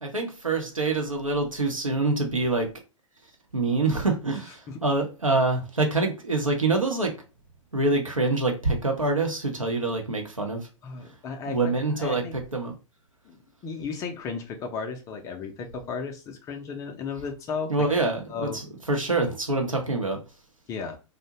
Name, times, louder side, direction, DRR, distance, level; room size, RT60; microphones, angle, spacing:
voice 1, 0.0-2.7 3.5-7.1 7.7-10.6 11.5-12.2 12.5-12.7 17.7-20.2, right 3 dB, 85° right, 0.8 m, -25 dB
voice 2, 10.8-11.7 12.0-12.4 13.3-17.7 18.3-18.6 20.7-21.0, left 5 dB, 20° left, 0.4 m, -34 dB
2.5 x 2.1 x 2.8 m
figure-of-eight pair, 105°, 17 cm